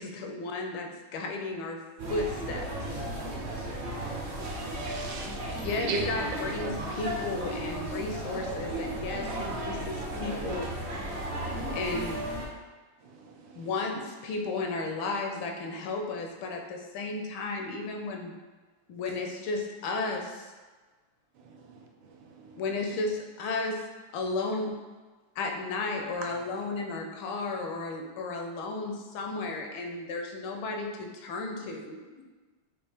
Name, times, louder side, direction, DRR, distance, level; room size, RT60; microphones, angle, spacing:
voice 1, 0.0-1.8 2.1-2.7 5.6-6.7 7.0-11.0 11.7-12.2 13.5-18.3 18.9-20.5 22.6-23.8 24.1-24.7 25.4-32.0, left 3 dB, 80° left, 3 dB, 1.4 m, -34 dB
sound 1, 2.0-12.5, right 1 dB, 50° right, 0.8 m, -35 dB
voice 2, 3.2-3.9 31.5-31.7 31.9-32.2, left 1 dB, 65° left, -6 dB, 0.6 m, -53 dB
voice 3, 4.4-6.8 11.6-12.0 13.0-13.9 19.1-19.2 21.3-23.0 26.2-26.7, right 3 dB, 75° right, 1 dB, 1.4 m, -40 dB
5.4 x 2.7 x 3.4 m, 1.3 s
omnidirectional pair, 2.2 m